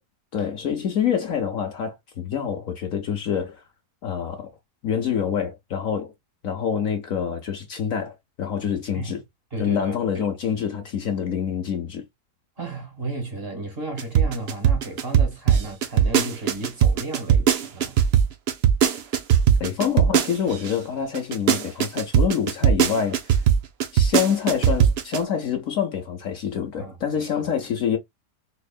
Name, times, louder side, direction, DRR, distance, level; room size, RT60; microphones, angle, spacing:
voice 1, 0.3-3.6 4.0-4.5 4.8-6.1 6.4-9.2 9.6-12.1 19.6-23.4 23.9-28.0, left 8 dB, 60° left, 1.1 m, -26 dB
voice 2, 9.5-10.3 12.6-17.9 26.8-27.0 27.4-27.5, right 2 dB, 35° right, 1.6 m, -34 dB
sound 1, 14.0-20.7 21.1-25.2, right 8 dB, 65° right, 0.6 m, -18 dB
4.3 x 3.0 x 2.2 m
omnidirectional pair, 1.8 m